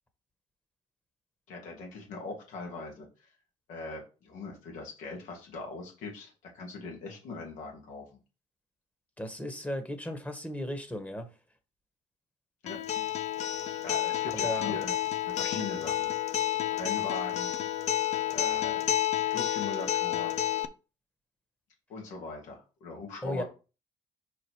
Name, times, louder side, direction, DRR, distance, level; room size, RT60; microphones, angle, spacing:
voice 1, 1.5-3.3 3.7-8.1 12.6-12.8 13.8-14.9 15.2-16.1 16.7-17.5 18.3-19.0 19.2-20.3 21.9-23.4, left 3 dB, 80° left, 2.6 m, -40 dB
voice 2, 9.2-11.3 14.3-14.8 23.2-23.4, left 1 dB, 10° left, 1.5 m, -35 dB
Acoustic guitar, 12.7-20.6, left 12 dB, 60° left, 0.6 m, -30 dB
4.9 x 4.8 x 4.7 m
supercardioid pair, 70°, 13 cm